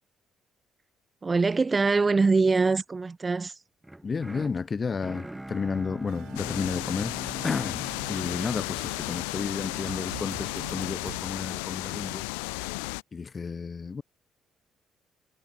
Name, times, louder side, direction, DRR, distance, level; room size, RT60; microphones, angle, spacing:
voice 1, 1.2-3.6, right 4 dB, 30° right, 0.5 m, -23 dB
sound 1, 3.8-9.9, right 1 dB, 10° right, 3.4 m, -43 dB
voice 2, 4.0-7.2 7.4-12.3 13.1-14.0, left 5 dB, 35° left, 2.9 m, -32 dB
sound 2, 6.1-11.2, right 18 dB, 65° right, 4.0 m, -47 dB
sound 3, 6.4-13.0, left 35 dB, 70° left, 0.4 m, -34 dB
figure-of-eight pair, 45°, 0 cm